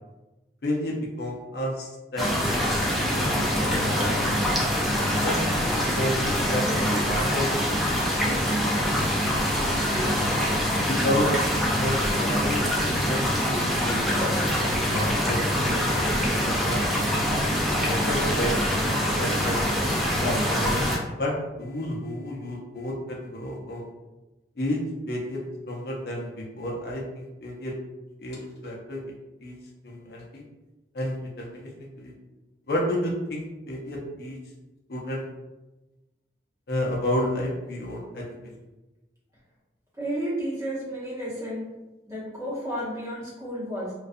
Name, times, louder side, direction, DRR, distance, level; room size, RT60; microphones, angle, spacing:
voice 1, 0.6-2.2 3.1-4.2 4.4-4.7 5.1-8.4 9.1-10.1 10.9-11.3 11.7-16.2 16.6-16.8 17.9-19.6 20.2-20.3 20.6-20.9 21.2-21.3 21.6-23.9 24.6-24.8 25.1-25.4 25.7-27.7 28.2-28.4 28.6-29.0 29.4-29.6 29.8-30.4 30.9-31.7 32.0-32.1 32.7-34.4 34.9-35.2 36.7-38.3, left 1 dB, 60° left, -2 dB, 0.5 m, -31 dB
sound 1, 2.2-21.0, equal, ahead, 0.3 m, -24 dB
voice 2, 40.0-41.7 42.1-43.9, equal, 20° right, -8 dB, 0.9 m, -32 dB
2.3 x 2.2 x 2.5 m, 1.1 s
head